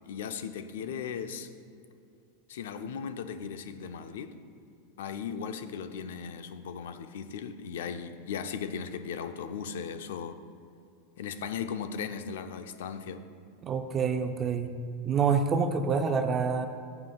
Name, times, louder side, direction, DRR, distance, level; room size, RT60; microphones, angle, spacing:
voice 1, 0.0-1.5 2.5-4.4 5.0-10.4 11.2-13.3, left 7 dB, 85° left, 0.5 m, -37 dB
voice 2, 13.6-14.8 15.0-16.7, right 5 dB, 20° right, 0.5 m, -27 dB
15.0 x 7.8 x 2.3 m
supercardioid pair, 160°, 0 cm